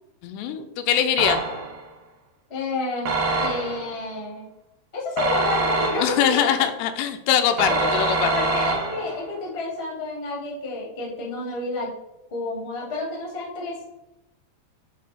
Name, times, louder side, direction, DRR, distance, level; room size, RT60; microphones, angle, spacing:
voice 1, 0.2-1.4 6.0-8.3, left 9 dB, 90° left, 8 dB, 2.8 m, -22 dB
sound 1, 1.2-1.9 3.1-4.0 5.2-6.4 7.6-9.2, right 3 dB, 65° right, 2.5 m, -25 dB
voice 2, 2.5-3.1 3.4-4.5 4.9-6.6 7.6-7.9 8.3-11.9 12.3-13.8, left 3 dB, 35° left, -3 dB, 1.0 m, -29 dB
9.6 x 3.5 x 4.0 m, 0.92 s
omnidirectional pair, 4.9 m